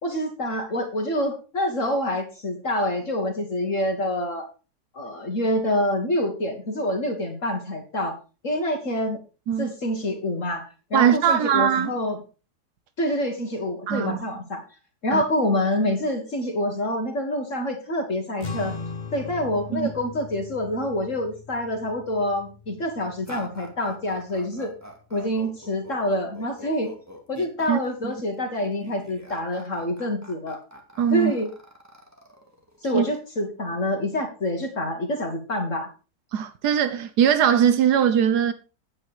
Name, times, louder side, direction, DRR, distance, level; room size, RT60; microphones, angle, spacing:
voice 1, 0.0-4.5 4.9-8.2 8.4-9.2 9.6-12.2 13.0-14.6 15.0-18.8 19.1-24.7 25.1-26.9 27.3-30.6 31.1-31.5 32.8-35.9, left 1 dB, 50° left, 2.1 m, -26 dB
voice 2, 10.9-11.9 13.9-14.2 15.1-15.2 19.7-19.9 27.7-28.1 31.0-31.3 32.9-33.0 36.3-38.5, right 8 dB, 90° right, 1.5 m, -21 dB
sound 1, 18.4-25.0, left 4 dB, 30° left, 1.4 m, -39 dB
sound 2, 23.2-33.2, equal, 10° right, 2.3 m, -44 dB
9.6 x 9.3 x 4.9 m
omnidirectional pair, 1.7 m